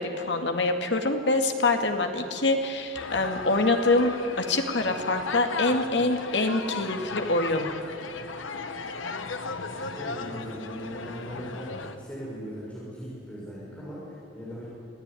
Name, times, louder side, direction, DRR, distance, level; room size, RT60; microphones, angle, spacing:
voice 1, 0.0-7.7, left 2 dB, 65° left, 5 dB, 2.2 m, -25 dB
sound 1, 2.9-12.0, left 4 dB, 90° left, 1.3 m, -36 dB
voice 2, 9.7-14.7, equal, 5° left, -8 dB, 6.4 m, -39 dB
24.5 x 15.5 x 10.0 m, 2.5 s
head